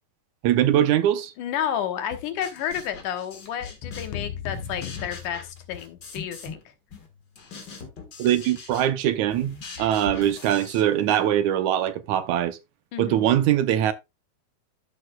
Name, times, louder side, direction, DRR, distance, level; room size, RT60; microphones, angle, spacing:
voice 1, 0.4-1.3 8.2-12.6 13.0-13.9, right 11 dB, 80° right, 2.1 m, -22 dB
voice 2, 1.4-6.6 12.9-13.3, left 9 dB, 90° left, 2.8 m, -31 dB
sound 1, 2.1-4.2 4.5-6.6 6.9-11.3, left 4 dB, 40° left, 1.9 m, -41 dB
sound 2, 3.8-6.1, left 9 dB, 65° left, 1.7 m, -37 dB
13.0 x 6.5 x 2.3 m
omnidirectional pair, 3.5 m